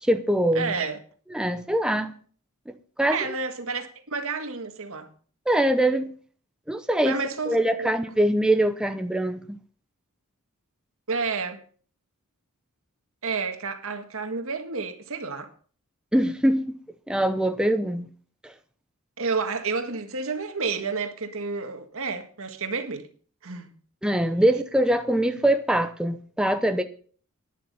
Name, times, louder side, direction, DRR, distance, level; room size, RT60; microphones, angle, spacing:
voice 1, 0.0-0.8 1.3-2.1 2.7-3.3 5.5-6.1 6.7-7.2 7.5-9.5 16.1-16.8 17.1-18.1 18.4-18.5 24.0-26.8, right 1 dB, 5° right, 0.8 m, -23 dB
voice 2, 0.5-1.0 3.1-5.1 7.0-7.9 11.1-11.6 13.2-15.5 19.2-23.1 23.4-23.7, right 4 dB, 65° right, 1.8 m, -30 dB
11.5 x 10.5 x 5.4 m
head